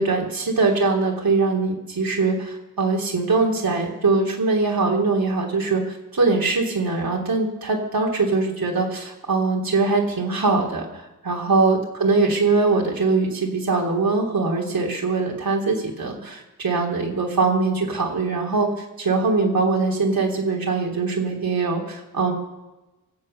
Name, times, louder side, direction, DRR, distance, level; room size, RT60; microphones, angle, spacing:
voice 1, 0.0-22.3, right 3 dB, 75° right, -1 dB, 3.2 m, -22 dB
23.0 x 8.1 x 6.5 m, 1.1 s
wide cardioid pair, 70°, 36 cm